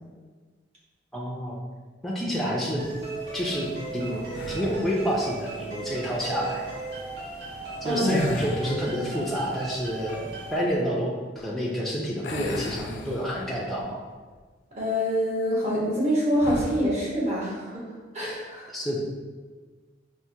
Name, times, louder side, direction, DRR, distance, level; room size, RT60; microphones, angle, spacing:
voice 1, 1.1-1.6 2.0-2.8 3.3-6.6 7.8-14.0 18.7-19.0, equal, ahead, -4 dB, 0.3 m, -29 dB
sound 1, 2.8-10.6, right 3 dB, 70° right, 1.2 m, -36 dB
sound 2, 4.3-5.0 7.9-9.0 12.2-13.7 14.1-14.3 16.4-16.9, left 2 dB, 80° left, 0.4 m, -33 dB
voice 2, 14.8-17.8 18.1-18.7, equal, 40° right, -6 dB, 1.0 m, -26 dB
4.3 x 2.0 x 2.7 m, 1.4 s
head